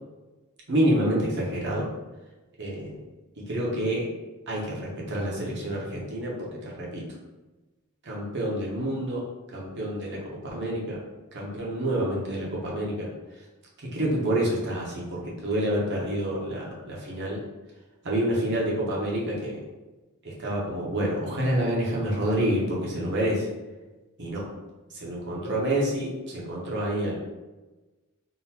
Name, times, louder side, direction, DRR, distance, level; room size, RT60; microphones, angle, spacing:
voice 1, 0.7-1.9 2.6-3.0 3.5-4.1 4.5-7.0 8.0-9.2 9.5-11.0 11.3-13.1 13.9-17.4 18.0-19.6 20.2-23.5 24.2-24.4 24.9-27.1, right 1 dB, 55° right, -4 dB, 0.9 m, -28 dB
3.8 x 2.5 x 2.8 m, 1.1 s
head